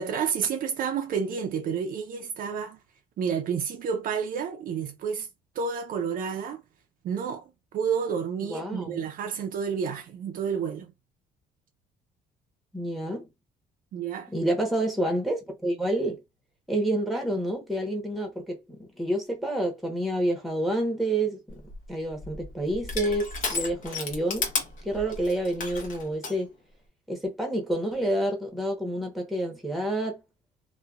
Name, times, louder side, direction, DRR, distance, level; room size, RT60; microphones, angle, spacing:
voice 1, 0.0-2.8 3.2-5.3 5.6-6.6 7.0-10.9 13.9-14.3, right 6 dB, 55° right, 0.5 m, -30 dB
voice 2, 8.4-9.0 12.7-13.3 14.3-16.2 16.7-21.6 21.9-24.5 24.8-26.5 27.1-30.2, right 1 dB, ahead, 0.9 m, -28 dB
Crushing, 21.5-26.4, left 4 dB, 50° left, 0.9 m, -34 dB
2.8 x 2.2 x 2.3 m
cardioid pair, 110°, 17 cm